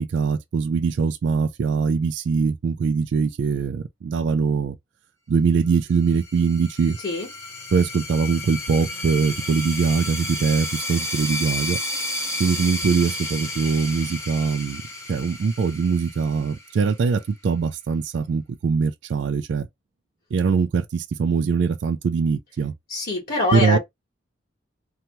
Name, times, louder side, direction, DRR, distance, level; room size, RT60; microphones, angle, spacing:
voice 1, 0.0-4.8 5.3-7.0 7.7-11.8 12.4-14.8 15.1-19.7 20.3-22.7 23.5-23.8, right 5 dB, 65° right, 0.3 m, -22 dB
sound 1, 5.9-17.2, left 1 dB, 15° left, 0.7 m, -32 dB
voice 2, 22.9-23.8, left 2 dB, 50° left, 1.2 m, -24 dB
2.8 x 2.2 x 2.9 m
head